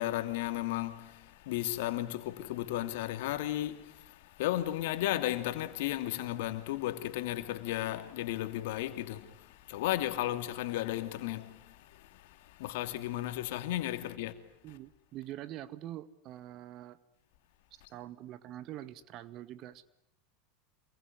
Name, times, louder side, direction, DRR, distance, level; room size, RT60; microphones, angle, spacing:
voice 1, 0.0-14.4 17.8-17.9, left 14 dB, 70° left, 2.7 m, -34 dB
voice 2, 14.6-17.0 17.9-19.9, right 13 dB, 50° right, 1.9 m, -45 dB
28.0 x 22.0 x 9.3 m
hypercardioid pair, 95°, 0 cm